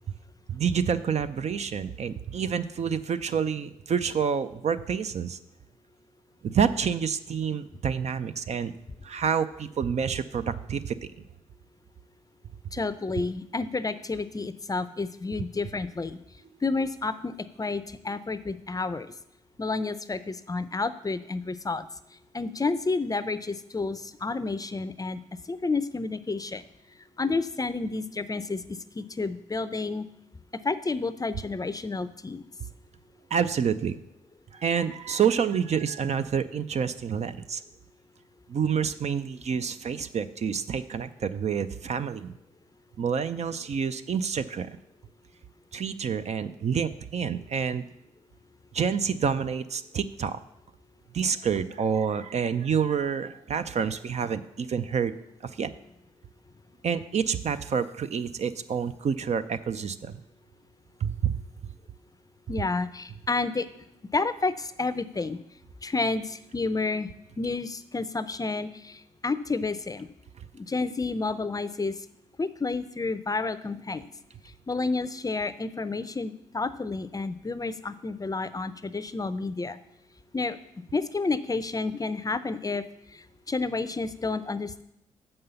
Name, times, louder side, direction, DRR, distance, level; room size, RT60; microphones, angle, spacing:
voice 1, 0.5-5.4 6.4-8.7 9.0-11.2 33.3-34.0 34.5-37.6 38.5-42.4 43.0-44.7 45.7-47.8 48.7-50.4 51.1-55.2 55.4-55.7 56.8-60.2 61.0-61.3, right 7 dB, 50° right, 11 dB, 0.6 m, -28 dB
voice 2, 12.7-16.2 16.6-19.1 19.6-21.9 22.3-25.2 25.5-26.6 27.2-30.0 30.6-32.4 62.5-63.7 64.1-65.4 65.8-67.1 67.4-70.1 70.5-71.9 72.4-74.1 74.7-79.8 80.3-80.6 80.9-82.8 83.5-84.8, left 3 dB, 25° left, 13 dB, 0.5 m, -30 dB
6.8 x 5.5 x 6.9 m, 0.82 s
hypercardioid pair, 50°, 15 cm